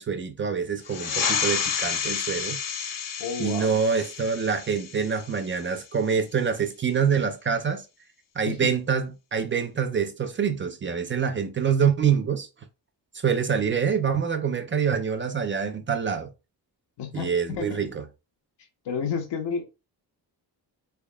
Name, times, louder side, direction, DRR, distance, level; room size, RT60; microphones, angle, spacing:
voice 1, 0.0-2.6 3.4-7.8 8.4-12.5 13.2-16.3 17.1-18.0, right 7 dB, 30° right, 0.4 m, -26 dB
sound 1, 0.8-5.9, left 7 dB, 55° left, 0.8 m, -30 dB
voice 2, 3.2-3.8 8.4-8.7 17.0-17.8 18.8-19.7, left 6 dB, 90° left, 0.9 m, -31 dB
3.6 x 3.4 x 2.2 m
wide cardioid pair, 150°, 41 cm